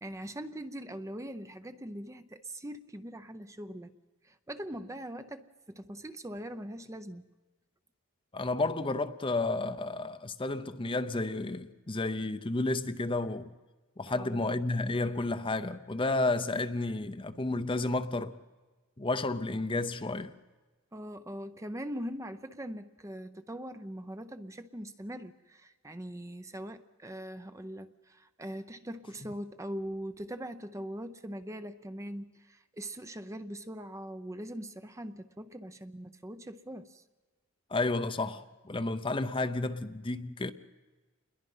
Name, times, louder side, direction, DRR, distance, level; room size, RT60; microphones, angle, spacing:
voice 1, 0.0-3.9 4.2-7.2 14.1-14.4 20.9-37.0, equal, 15° right, 0.7 m, -41 dB
voice 2, 8.3-13.4 14.0-18.4 19.0-20.3 37.7-40.5, left 2 dB, 25° left, 0.7 m, -31 dB
28.0 x 21.5 x 5.6 m
head